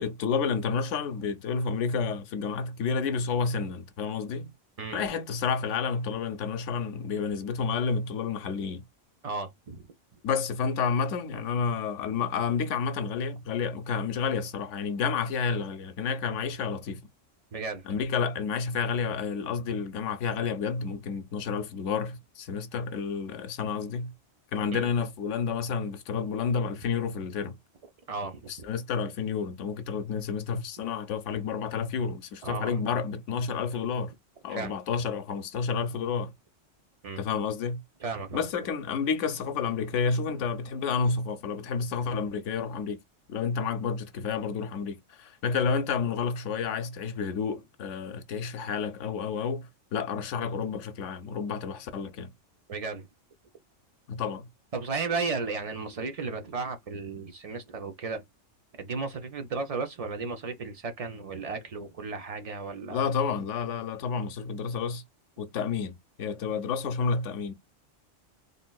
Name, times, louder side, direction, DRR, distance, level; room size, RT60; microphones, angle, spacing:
voice 1, 0.0-4.5 4.9-8.8 10.2-17.1 17.9-24.1 24.5-27.6 28.5-34.1 34.4-36.3 37.2-37.8 38.3-43.0 43.3-52.3 54.1-54.5 62.9-65.0 65.4-67.5, left 5 dB, 75° left, 0.9 m, -30 dB
voice 2, 9.2-9.8 17.5-17.8 24.7-24.9 28.1-28.5 32.4-32.8 34.5-34.8 37.0-37.2 38.0-38.4 52.7-53.1 54.7-58.2 58.8-63.1, right 4 dB, 55° right, 0.4 m, -34 dB
3.5 x 2.5 x 2.3 m
omnidirectional pair, 1.3 m